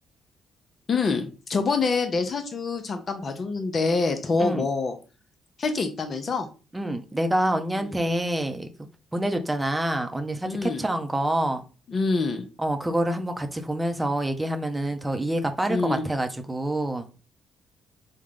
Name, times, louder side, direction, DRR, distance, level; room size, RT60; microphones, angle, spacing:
voice 1, 0.9-5.0 5.6-6.5 7.8-8.0 10.5-10.8 11.9-12.5 15.6-16.0, left 4 dB, 45° left, 0.8 m, -26 dB
voice 2, 6.7-8.7 9.1-11.6 12.6-17.1, right 1 dB, 15° right, 0.7 m, -27 dB
3.7 x 2.3 x 3.6 m
hypercardioid pair, 45°, 0 cm